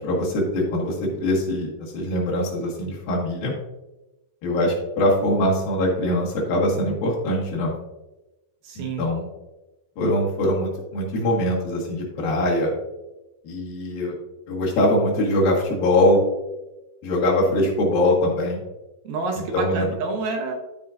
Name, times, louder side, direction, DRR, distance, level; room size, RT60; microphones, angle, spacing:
voice 1, 0.0-3.5 4.4-7.8 8.8-9.3 10.0-12.7 13.4-14.1 14.5-16.2 17.0-18.6 19.4-19.9, left 1 dB, 65° left, -3 dB, 3.4 m, -22 dB
voice 2, 8.6-9.0 19.0-20.6, right 3 dB, 75° right, 3 dB, 2.6 m, -28 dB
12.5 x 5.4 x 2.6 m, 1.0 s
omnidirectional pair, 4.6 m